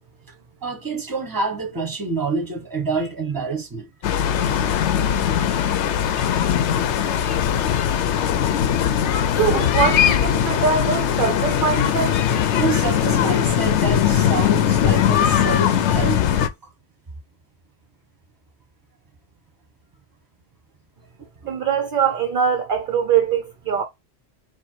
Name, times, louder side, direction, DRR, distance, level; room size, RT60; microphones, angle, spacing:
voice 1, 0.6-3.9 12.5-16.7 21.4-21.5, right 4 dB, 20° right, 1.1 m, -27 dB
sound 1, 4.0-16.5, left 9 dB, 75° left, 0.9 m, -20 dB
voice 2, 9.4-12.5 21.5-23.8, right 7 dB, 55° right, 0.7 m, -22 dB
4.6 x 2.2 x 4.5 m
omnidirectional pair, 1.2 m